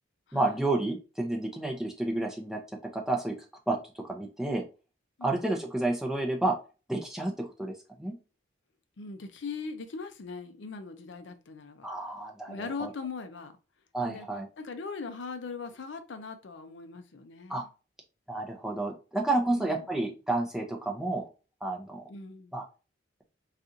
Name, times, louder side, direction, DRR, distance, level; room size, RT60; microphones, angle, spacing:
voice 1, 0.3-2.6 2.9-3.3 3.7-4.6 5.2-6.6 6.9-8.2 11.8-12.9 13.9-14.5 17.5-17.6 18.3-21.3 21.6-22.0 22.5-22.6, right 2 dB, ahead, 0.5 m, -30 dB
voice 2, 9.0-11.9 12.5-13.5 14.0-14.3 14.6-17.7 19.5-19.9 22.1-22.5, left 4 dB, 60° left, 0.5 m, -40 dB
4.1 x 2.4 x 2.5 m
head